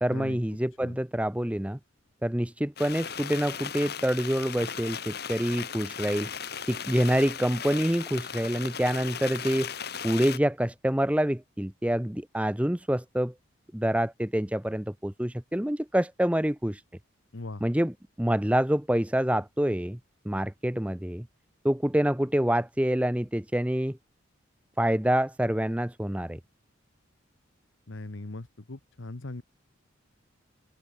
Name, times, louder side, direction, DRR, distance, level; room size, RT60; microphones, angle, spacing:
voice 1, 0.0-1.8 2.2-6.3 6.7-9.7 10.0-13.3 13.7-16.8 17.6-20.0 20.2-21.3 21.6-24.0 24.8-26.4, equal, 5° right, 0.7 m, -27 dB
sound 1, 2.8-10.4, left 7 dB, 50° left, 3.0 m, -37 dB
voice 2, 17.3-17.6 27.9-29.4, left 2 dB, 75° left, 1.2 m, -39 dB
open air
head